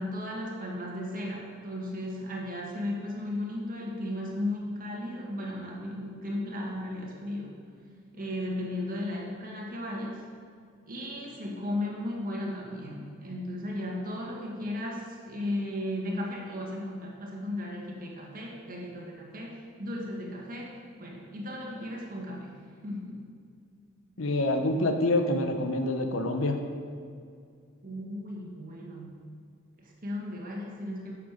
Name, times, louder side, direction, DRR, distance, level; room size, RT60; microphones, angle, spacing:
voice 1, 0.0-7.6 8.1-10.3 10.9-22.5 22.8-23.3 27.8-29.2 29.8-31.1, left 1 dB, 45° right, -2 dB, 1.8 m, -35 dB
voice 2, 24.2-26.6, left 2 dB, 75° left, 6 dB, 0.9 m, -26 dB
10.5 x 6.8 x 5.2 m, 2.3 s
head